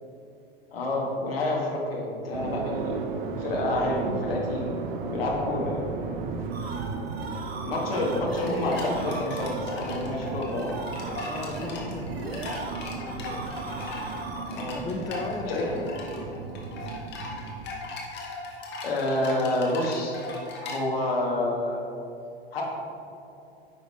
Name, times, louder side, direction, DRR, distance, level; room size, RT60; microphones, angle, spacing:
voice 1, 0.7-3.0 3.4-4.7 5.1-5.8 7.6-10.9 14.4-14.8 15.5-15.8 18.8-20.2 20.6-21.8 22.5-22.6, left 2 dB, 70° left, -2 dB, 1.7 m, -28 dB
sound 1, 2.3-17.7, right 4 dB, 50° right, 0.8 m, -35 dB
voice 2, 2.7-3.4 11.2-13.5 14.7-15.7 16.1-16.5, left 3 dB, 10° left, 2 dB, 0.5 m, -38 dB
sound 2, 6.5-14.7, right 2 dB, 75° right, 1.1 m, -38 dB
sound 3, 8.4-20.8, left 2 dB, 35° left, 1.5 m, -39 dB
9.9 x 5.8 x 3.2 m, 2.7 s
figure-of-eight pair, 85°, 31 cm